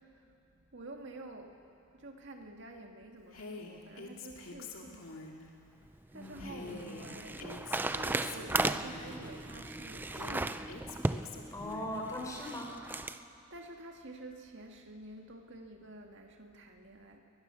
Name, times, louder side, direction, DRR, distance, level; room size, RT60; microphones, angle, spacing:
voice 1, 0.0-5.4 6.1-11.5 13.5-17.2, right 2 dB, 60° right, 3 dB, 2.0 m, -50 dB
Female speech woman speaking, 3.3-5.5 6.4-9.3 10.1-12.0, left 3 dB, 80° left, 2.3 m, -46 dB
sound 1, 5.9-13.2, right 2 dB, 10° right, 0.4 m, -36 dB
voice 2, 6.1-7.2 11.5-12.7, left 1 dB, 15° left, -1 dB, 3.8 m, -41 dB
22.0 x 20.0 x 7.0 m, 2.6 s
head